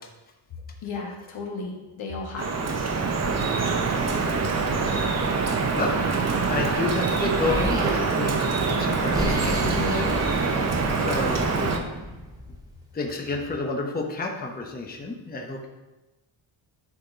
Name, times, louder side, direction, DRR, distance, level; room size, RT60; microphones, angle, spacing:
voice 1, 0.8-2.6, left 3 dB, 80° left, 0 dB, 1.8 m, -34 dB
Drip, 2.4-11.8, right 4 dB, 35° right, 0.7 m, -25 dB
voice 2, 6.5-10.2 11.0-11.7 12.9-15.7, left 3 dB, 20° left, 1 dB, 0.8 m, -30 dB
Explosion, 7.4-8.0 8.8-12.7, equal, 5° right, 1.2 m, -31 dB
11.0 x 4.3 x 3.9 m, 1.1 s
wide cardioid pair, 150°, 48 cm